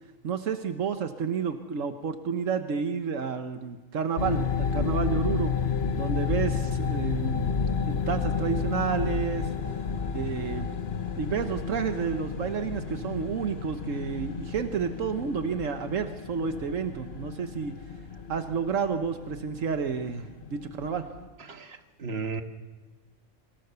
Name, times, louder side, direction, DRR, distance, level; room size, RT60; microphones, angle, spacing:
voice 1, 0.2-5.5 5.9-7.6 7.9-9.5 10.1-10.8 11.2-17.7 18.3-21.0, right 6 dB, 80° right, 7 dB, 1.4 m, -30 dB
sound 1, 4.2-21.3, left 6 dB, 55° left, 1.2 m, -31 dB
voice 2, 21.4-22.4, right 4 dB, 50° right, 6 dB, 1.6 m, -35 dB
25.0 x 17.5 x 6.8 m, 1.2 s
omnidirectional pair, 1.3 m